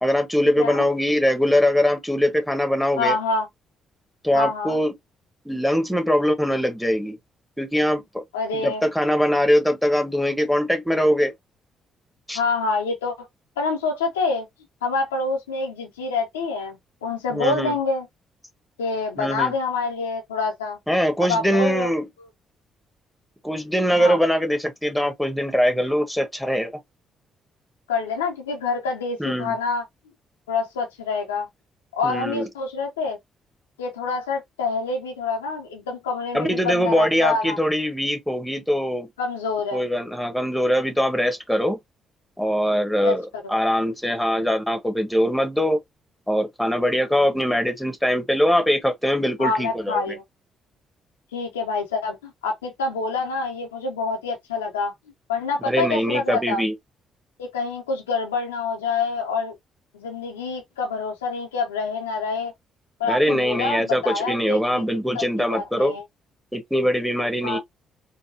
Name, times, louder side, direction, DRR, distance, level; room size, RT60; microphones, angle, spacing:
voice 1, 0.0-3.2 4.2-4.9 5.4-7.2 7.6-8.2 8.5-11.3 12.3-12.4 17.3-17.7 19.2-19.5 20.9-22.1 23.4-26.7 29.2-29.6 32.0-32.5 36.3-39.1 39.7-41.8 42.4-45.8 46.3-50.1 55.6-56.7 63.1-65.9 66.5-67.6, equal, ahead, 1.2 m, -22 dB
voice 2, 3.0-3.5 4.3-4.8 8.3-8.8 12.3-13.3 13.6-14.5 14.8-18.1 18.8-20.8 21.2-21.9 24.0-24.2 27.9-29.8 30.5-31.5 31.9-33.2 33.8-37.6 39.2-39.8 43.0-43.4 49.4-50.2 51.3-54.9 55.3-56.6 57.4-59.5 59.9-62.5 63.0-66.0 67.4-67.6, left 4 dB, 90° left, 0.7 m, -26 dB
4.0 x 2.2 x 2.6 m
hypercardioid pair, 45°, 0 cm